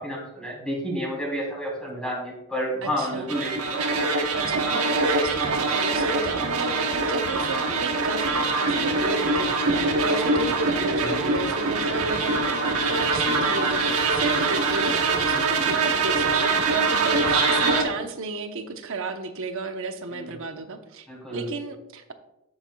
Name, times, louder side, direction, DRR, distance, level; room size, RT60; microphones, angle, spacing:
voice 1, 0.0-3.8 10.9-11.3 15.3-15.7 20.1-20.3 21.1-21.4, equal, 5° left, -4 dB, 3.2 m, -31 dB
voice 2, 2.8-3.4 4.3-21.1 21.3-22.1, right 3 dB, 65° right, 7 dB, 0.9 m, -33 dB
sound 1, 3.3-17.8, right 3 dB, 80° right, 1.2 m, -23 dB
9.0 x 8.9 x 2.3 m, 0.89 s
head